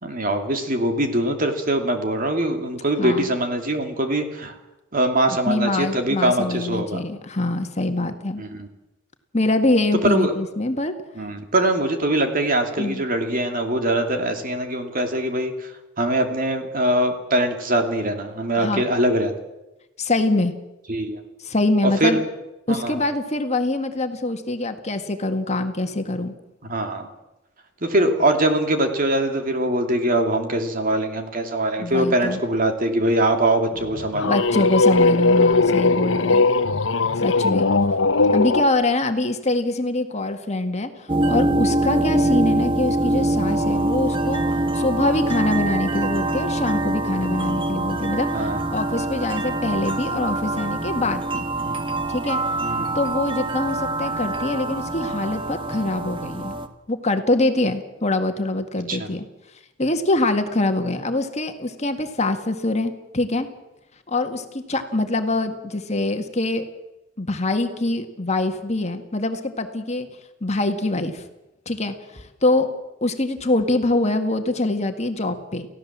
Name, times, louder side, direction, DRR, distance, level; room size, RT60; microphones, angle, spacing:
voice 1, 0.0-4.5 4.9-7.0 8.4-8.7 10.1-10.3 11.2-15.5 16.0-19.3 20.9-21.2 22.0-22.2 22.7-22.9 26.6-27.1 27.8-34.4 36.2-36.3 42.9-43.0 48.3-48.6 51.6-51.8 52.6-53.0 58.9-59.1, right 1 dB, 45° right, 5 dB, 2.8 m, -22 dB
voice 2, 3.0-3.3 5.3-8.4 9.3-10.9 12.8-13.0 18.6-18.9 20.0-20.5 21.4-22.2 22.7-26.3 31.8-32.4 34.2-36.5 37.2-37.7 38.3-44.4 44.7-51.4 52.1-52.4 53.0-56.6 56.9-59.3 59.8-63.5 64.1-66.6 67.2-70.1 70.4-71.2 71.7-72.7 73.0-75.7, left 2 dB, 35° left, 6 dB, 1.9 m, -24 dB
sound 1, 33.8-38.7, left 3 dB, 80° left, 0.9 m, -19 dB
sound 2, 41.1-56.7, right 2 dB, 25° right, 1.7 m, -24 dB
29.5 x 15.5 x 7.5 m, 0.99 s
head